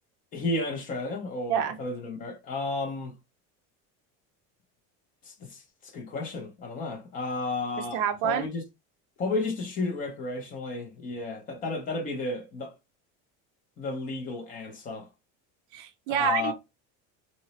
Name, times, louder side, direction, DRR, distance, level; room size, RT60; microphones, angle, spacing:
voice 1, 0.3-3.1 5.3-8.6 9.2-12.7 13.8-15.1 16.1-16.5, left 3 dB, 25° left, 0.5 m, -33 dB
voice 2, 7.9-8.5 15.7-16.5, right 8 dB, 55° right, 0.5 m, -27 dB
3.9 x 2.0 x 2.8 m
cardioid pair, 180°, 37 cm